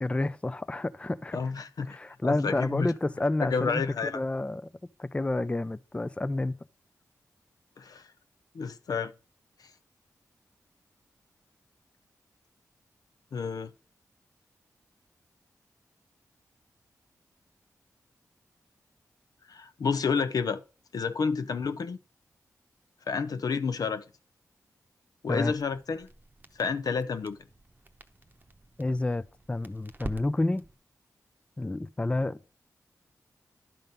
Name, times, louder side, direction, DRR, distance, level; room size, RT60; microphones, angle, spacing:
voice 1, 0.0-1.4 1.9-4.7 5.0-6.5 25.3-25.5 28.8-30.6 31.6-32.4, left 2 dB, 15° left, 0.4 m, -29 dB
voice 2, 1.3-2.9 3.4-4.2 7.8-8.0 8.5-9.1 13.3-13.7 19.5-20.6 20.9-22.0 23.1-24.0 25.2-26.1 26.6-27.4, left 5 dB, 70° left, 0.5 m, -30 dB
Crackle, 25.5-30.8, right 2 dB, 25° right, 0.8 m, -46 dB
10.5 x 3.8 x 5.3 m
cardioid pair, 40°, 7 cm